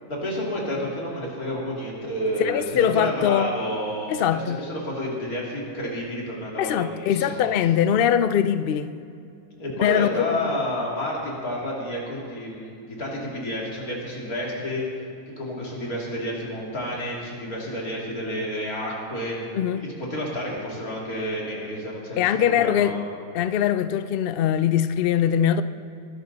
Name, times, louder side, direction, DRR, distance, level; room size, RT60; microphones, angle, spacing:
voice 1, 0.1-7.5 9.6-14.9 15.4-19.4 19.8-23.0, equal, 85° left, -3 dB, 3.3 m, -30 dB
voice 2, 2.4-3.5 4.1-4.6 6.6-8.9 9.8-10.5 19.5-19.8 22.2-22.9 23.3-25.6, left 9 dB, 65° left, 12 dB, 0.5 m, -22 dB
21.5 x 12.0 x 4.0 m, 2.5 s
omnidirectional pair, 1.5 m